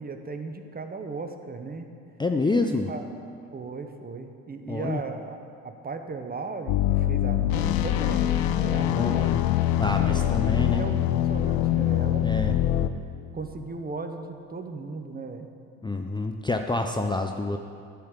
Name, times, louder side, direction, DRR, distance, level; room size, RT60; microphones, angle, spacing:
voice 1, 0.0-1.9 2.4-3.1 3.5-9.3 10.1-12.3 13.3-15.5, right 4 dB, 25° right, 6 dB, 1.0 m, -37 dB
voice 2, 2.2-2.9 4.7-5.0 8.9-9.4 9.8-10.8 12.2-12.5 15.8-17.6, left 3 dB, 15° left, 5 dB, 0.5 m, -27 dB
sound 1, 6.7-12.9, left 12 dB, 80° left, 0.6 m, -24 dB
10.5 x 5.5 x 8.2 m, 2.4 s
supercardioid pair, 75°, 35 cm